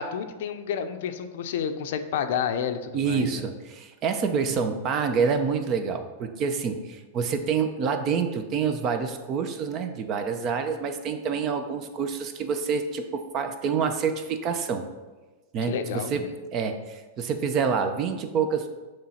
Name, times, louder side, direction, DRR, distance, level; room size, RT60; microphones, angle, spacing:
voice 1, 0.0-3.4 4.6-4.7 15.7-16.3, left 7 dB, 70° left, 8 dB, 0.6 m, -30 dB
voice 2, 2.9-14.8 15.5-16.2 16.5-18.7, right 6 dB, 40° right, 7 dB, 0.7 m, -27 dB
6.9 x 3.2 x 5.6 m, 1.2 s
hypercardioid pair, 115°, 0 cm